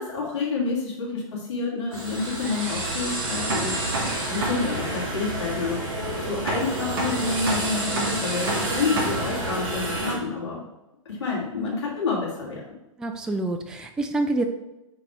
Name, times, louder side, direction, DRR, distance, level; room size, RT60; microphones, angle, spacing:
voice 1, 0.0-5.8 6.2-10.6 11.0-12.6, left 4 dB, 55° left, -3 dB, 2.5 m, -28 dB
sound 1, 1.9-10.1, right 2 dB, 45° right, 2.3 m, -28 dB
voice 2, 13.0-14.4, right 2 dB, 5° right, 5 dB, 0.3 m, -27 dB
5.3 x 4.0 x 5.6 m, 0.96 s
figure-of-eight pair, 105°, 17 cm